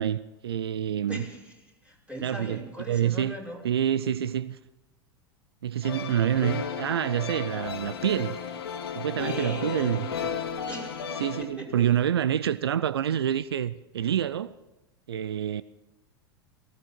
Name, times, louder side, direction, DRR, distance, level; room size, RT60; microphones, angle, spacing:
voice 1, 0.0-1.2 2.2-2.6 2.9-3.3 3.6-4.6 5.6-8.4 9.0-10.1 11.2-14.5 15.1-15.6, right 10 dB, 75° right, 0.5 m, -27 dB
voice 2, 1.1-3.6 9.1-10.3 10.7-12.0, equal, 10° right, 5.8 m, -40 dB
sound 1, 5.8-11.4, left 7 dB, 75° left, 1.9 m, -34 dB
18.5 x 17.5 x 4.4 m
figure-of-eight pair, 90°, 13 cm